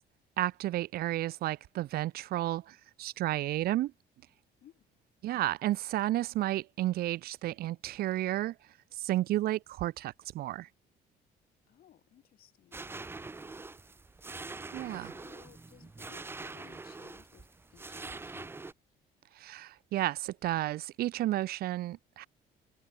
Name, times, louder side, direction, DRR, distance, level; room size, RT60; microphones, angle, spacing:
voice 1, 0.4-3.9 5.2-8.5 9.0-10.7 14.7-15.1 19.4-22.3, right 15 dB, 65° right, 0.6 m, -32 dB
voice 2, 11.7-13.8 14.9-18.5, left 12 dB, 60° left, 4.9 m, -60 dB
sound 1, 12.7-18.7, right 3 dB, 15° right, 0.6 m, -44 dB
cardioid pair, 110°, 17 cm